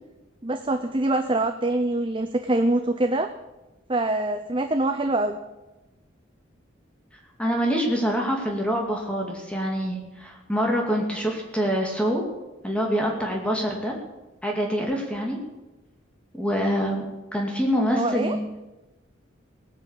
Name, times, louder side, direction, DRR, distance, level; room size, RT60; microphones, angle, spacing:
voice 1, 0.4-3.3 3.9-5.4 17.8-18.4, right 2 dB, 25° right, 6 dB, 0.8 m, -24 dB
voice 2, 7.4-12.2 12.6-13.9 14.4-15.4 16.3-18.5, equal, 5° left, 0 dB, 2.4 m, -25 dB
18.0 x 9.2 x 8.2 m, 1.0 s
head